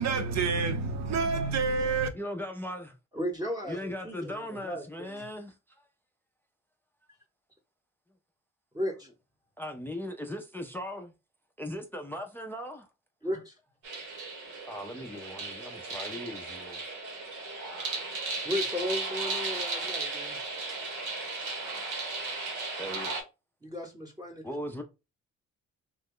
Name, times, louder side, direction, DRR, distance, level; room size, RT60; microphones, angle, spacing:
voice 1, 0.0-2.1, right 4 dB, 60° right, 0.7 m, -28 dB
voice 2, 2.1-2.9 3.7-5.5 9.6-11.1 11.6-12.9 14.7-16.8 22.8-23.2 24.4-24.8, left 1 dB, 5° left, 0.5 m, -38 dB
voice 3, 3.1-5.3 8.7-9.1 13.2-13.5 18.4-20.4 23.6-24.4, equal, 10° right, 0.9 m, -35 dB
sound 1, 13.8-23.2, right 3 dB, 80° right, 1.1 m, -35 dB
2.9 x 2.2 x 3.6 m
cardioid pair, 90°, 30 cm